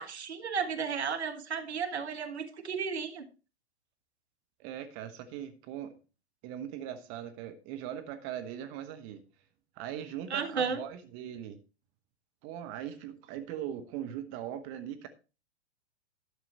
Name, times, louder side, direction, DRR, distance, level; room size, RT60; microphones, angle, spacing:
voice 1, 0.0-3.2 10.3-10.8, right 6 dB, 75° right, 1.5 m, -33 dB
voice 2, 4.6-6.0 6.4-9.2 9.8-11.6 12.4-15.1, right 10 dB, 35° right, 1.2 m, -40 dB
11.5 x 6.7 x 4.5 m
figure-of-eight pair, 105°, 33 cm